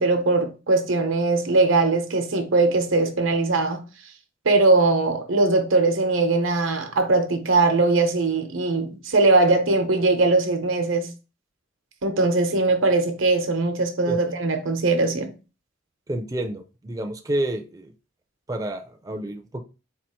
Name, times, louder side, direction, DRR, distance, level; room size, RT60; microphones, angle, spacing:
voice 1, 0.0-3.8 4.4-11.1 12.0-15.3, right 3 dB, 85° right, 0.9 m, -20 dB
voice 2, 16.1-17.9 18.5-19.6, right 1 dB, 20° right, 0.5 m, -29 dB
4.2 x 2.5 x 4.3 m
head